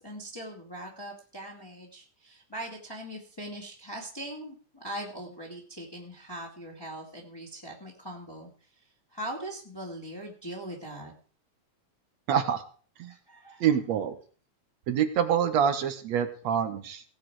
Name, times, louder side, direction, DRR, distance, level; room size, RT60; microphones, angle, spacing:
voice 1, 0.0-11.1 13.1-13.7, right 1 dB, 10° left, -2 dB, 2.1 m, -41 dB
voice 2, 12.3-12.6 13.0-13.1 13.6-14.2 14.9-17.0, right 8 dB, 70° right, 9 dB, 2.3 m, -26 dB
17.5 x 8.5 x 4.7 m, 0.41 s
omnidirectional pair, 3.3 m